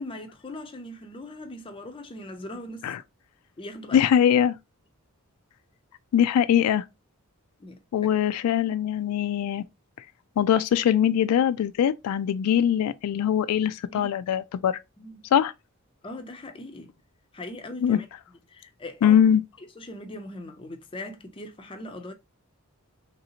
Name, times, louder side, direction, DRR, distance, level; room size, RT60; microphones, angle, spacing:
voice 1, 0.0-2.9 3.6-4.0 7.6-7.8 13.9-14.1 15.0-15.2 16.0-16.9 17.3-18.1 18.5-19.2 19.8-22.1, left 1 dB, 25° left, 0.4 m, -39 dB
voice 2, 3.9-4.6 6.1-6.8 7.9-9.7 10.4-14.8 15.3-15.5 17.8-18.0 19.0-19.4, left 9 dB, 85° left, 0.3 m, -22 dB
3.2 x 2.7 x 2.8 m
head